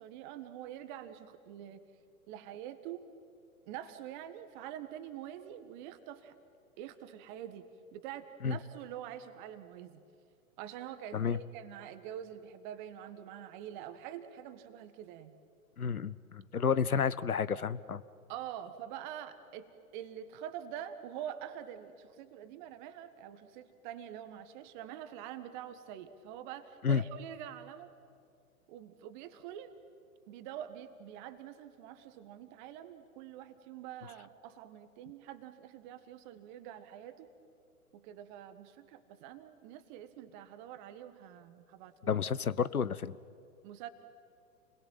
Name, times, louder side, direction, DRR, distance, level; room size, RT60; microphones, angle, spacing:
voice 1, 0.0-1.8 2.3-3.1 3.7-6.3 6.8-10.0 10.6-15.4 16.9-17.0 18.3-27.9 28.7-29.7 30.3-37.3 37.9-42.2 43.6-43.9, right 10 dB, 35° right, 11 dB, 1.6 m, -46 dB
voice 2, 15.8-18.0 26.8-27.0 42.1-43.2, left 6 dB, 80° left, 17 dB, 1.0 m, -30 dB
29.5 x 21.5 x 9.1 m, 2.4 s
figure-of-eight pair, 115°, 43 cm